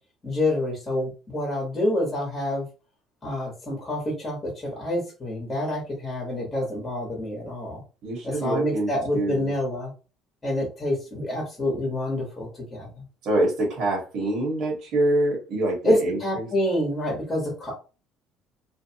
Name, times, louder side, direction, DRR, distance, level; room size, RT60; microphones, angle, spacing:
voice 1, 0.2-2.7 3.2-7.8 8.2-9.9 10.4-13.0 15.8-17.8, left 1 dB, 15° left, 1.1 m, -27 dB
voice 2, 8.0-9.5 13.2-16.5, right 1 dB, 60° right, 1.3 m, -25 dB
2.6 x 2.3 x 2.8 m
cardioid pair, 130°, 0 cm